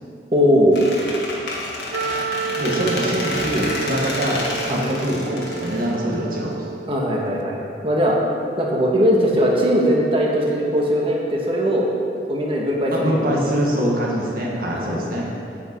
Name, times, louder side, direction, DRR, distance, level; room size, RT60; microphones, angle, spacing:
voice 1, 0.3-0.8 4.7-4.8 6.9-8.2 8.6-11.9 12.3-13.3 14.7-15.2, equal, 30° right, -2 dB, 1.5 m, -20 dB
Squeak, 0.7-6.5, left 2 dB, 65° left, 1.6 m, -29 dB
Wind instrument woodwind instrument, 1.9-7.0, right 5 dB, 80° right, 0.4 m, -30 dB
voice 2, 2.6-6.7 12.9-15.3, equal, 55° right, -3 dB, 1.9 m, -24 dB
9.1 x 8.7 x 4.6 m, 2.5 s
head